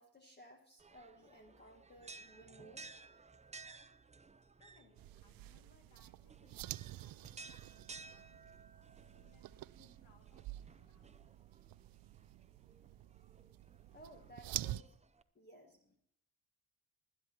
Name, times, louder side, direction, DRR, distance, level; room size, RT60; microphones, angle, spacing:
voice 1, 0.0-2.9 13.9-14.9 15.3-16.0, equal, 25° left, 3 dB, 1.6 m, -58 dB
sound 1, 0.8-15.2, right 4 dB, 15° right, 0.6 m, -57 dB
voice 2, 4.6-6.6 7.0-8.5 8.9-11.2, left 5 dB, 80° left, 3 dB, 2.4 m, -71 dB
sound 2, 5.0-14.8, right 16 dB, 55° right, 0.5 m, -48 dB
20.5 x 10.5 x 3.0 m, 0.72 s
hypercardioid pair, 45°, 43 cm